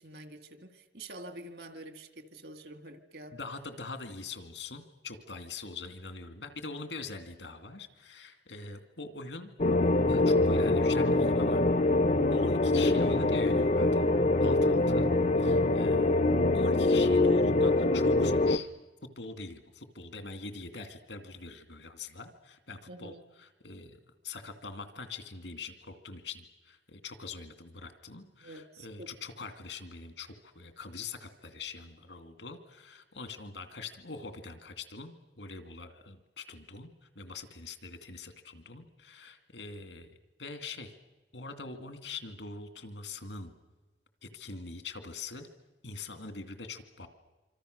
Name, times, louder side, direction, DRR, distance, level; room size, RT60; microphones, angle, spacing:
voice 1, 0.0-3.4 14.6-14.9 22.9-23.2 28.4-29.1, right 1 dB, 60° right, 9 dB, 2.0 m, -47 dB
voice 2, 3.3-9.5 10.1-11.6 12.3-14.0 14.4-15.1 15.4-16.2 16.5-18.7 19.2-36.9 37.2-40.1 40.4-40.9 41.3-43.5 44.2-45.5 45.8-47.1, left 4 dB, 80° left, 8 dB, 2.4 m, -43 dB
sound 1, 9.6-18.6, left 2 dB, 40° left, 0.7 m, -24 dB
26.0 x 26.0 x 6.7 m, 1.2 s
head